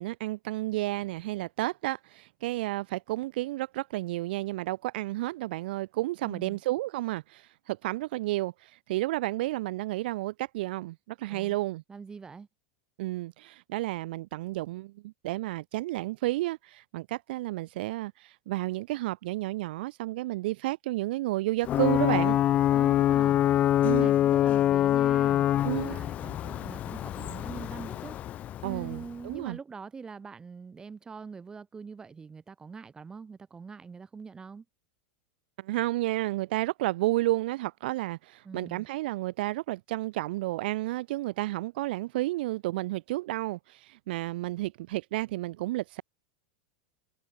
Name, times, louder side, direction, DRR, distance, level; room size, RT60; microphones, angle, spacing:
voice 1, 0.0-11.8 13.0-22.4 23.8-24.1 25.6-26.0 28.6-29.6 35.6-46.0, right 18 dB, 65° right, 0.4 m, -31 dB
voice 2, 6.2-6.6 11.3-11.6 11.9-12.5 22.7-28.2 28.6-34.6 38.4-38.9, right 5 dB, 15° right, 4.7 m, -44 dB
Ocean / Boat Water vehicle / Alarm, 21.6-29.2, left 12 dB, 25° left, 0.4 m, -25 dB
supercardioid pair, 155°, 6 cm